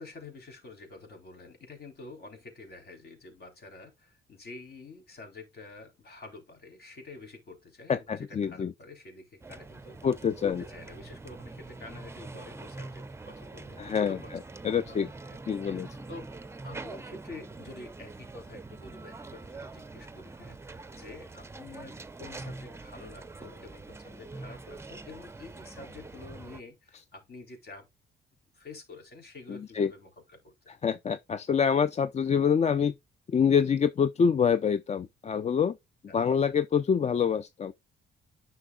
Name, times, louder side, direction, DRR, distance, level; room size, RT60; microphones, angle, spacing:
voice 1, 0.0-10.1 10.4-14.3 14.7-15.4 15.7-16.3 16.6-27.9 28.5-30.7 36.1-36.2, left 3 dB, 55° left, 3.7 m, -48 dB
voice 2, 7.9-8.7 10.0-10.6 13.8-14.2 14.6-15.1 15.5-15.9 29.5-29.9 30.7-32.9 33.3-35.8 36.1-37.7, left 7 dB, 35° left, 0.5 m, -26 dB
sound 1, 9.4-26.6, right 3 dB, 15° right, 0.6 m, -44 dB
9.8 x 5.9 x 2.3 m
cardioid pair, 90°, 20 cm